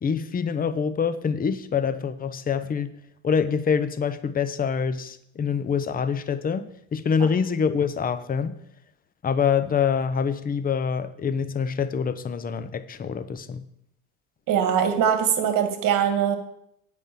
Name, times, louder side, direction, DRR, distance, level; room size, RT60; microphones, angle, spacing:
voice 1, 0.0-2.9 3.2-8.6 9.2-13.6, left 6 dB, 20° left, 12 dB, 0.8 m, -25 dB
voice 2, 14.5-16.4, right 8 dB, 45° right, 7 dB, 1.8 m, -22 dB
8.1 x 5.4 x 7.5 m, 0.73 s
hypercardioid pair, 85°, 44 cm